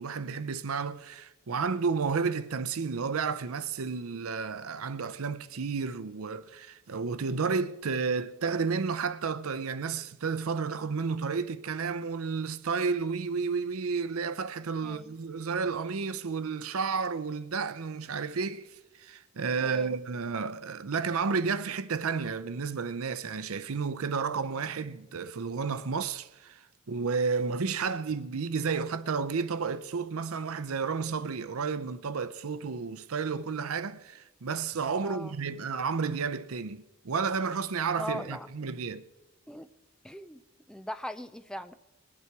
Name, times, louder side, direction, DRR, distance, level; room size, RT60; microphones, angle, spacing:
voice 1, 0.0-18.7 19.0-26.6 26.9-39.0, right 5 dB, 85° right, 0.6 m, -31 dB
voice 2, 14.8-15.2 19.6-19.9 35.0-35.3 38.0-38.5 39.5-39.7 40.0-40.4 40.7-41.8, equal, 5° left, 0.3 m, -39 dB
19.5 x 8.6 x 4.7 m
head